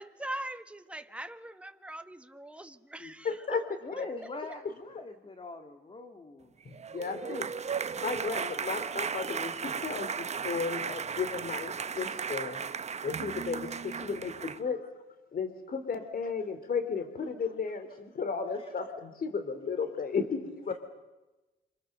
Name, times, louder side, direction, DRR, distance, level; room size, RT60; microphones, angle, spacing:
voice 1, 0.0-3.6 4.0-4.1, right 1 dB, 5° right, 1.5 m, -41 dB
voice 2, 3.2-3.6 4.0-4.1 6.7-7.5 8.0-12.6 13.0-14.8 15.3-20.7, left 5 dB, 45° left, 3.5 m, -34 dB
voice 3, 3.8-6.5, left 2 dB, 25° left, 2.4 m, -43 dB
sound 1, 6.7-14.6, right 6 dB, 35° right, 0.8 m, -35 dB
27.5 x 26.5 x 6.8 m
cardioid pair, 90°, 20 cm